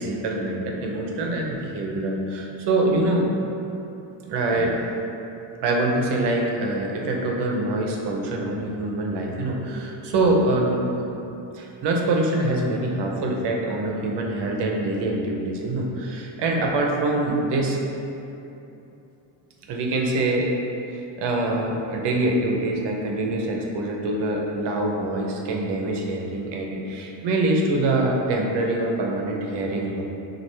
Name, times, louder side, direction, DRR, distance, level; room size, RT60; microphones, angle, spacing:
voice 1, 0.0-3.3 4.2-4.8 5.6-10.8 11.1-11.2 11.5-17.8 19.7-20.5 20.9-30.0, right 2 dB, 65° right, 0 dB, 0.8 m, -24 dB
6.1 x 2.5 x 3.3 m, 2.9 s
cardioid pair, 130°, 44 cm